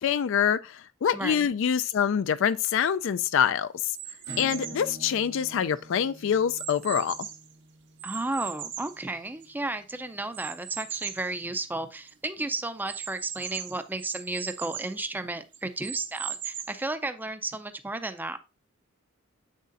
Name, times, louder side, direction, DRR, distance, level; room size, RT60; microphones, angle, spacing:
voice 1, 0.0-4.0 4.4-7.2, left 8 dB, 65° left, 0.4 m, -25 dB
voice 2, 1.1-1.5 8.0-18.4, right 2 dB, 10° right, 0.4 m, -33 dB
sound 1, 3.9-4.9 5.5-7.5 8.0-9.7 10.3-11.3 11.8-11.9 12.1-12.2 12.9-15.0 15.5-16.9, right 9 dB, 60° right, 0.9 m, -39 dB
Acoustic guitar / Strum, 4.2-9.5, right 2 dB, 85° right, 2.2 m, -47 dB
8.3 x 6.5 x 2.5 m
head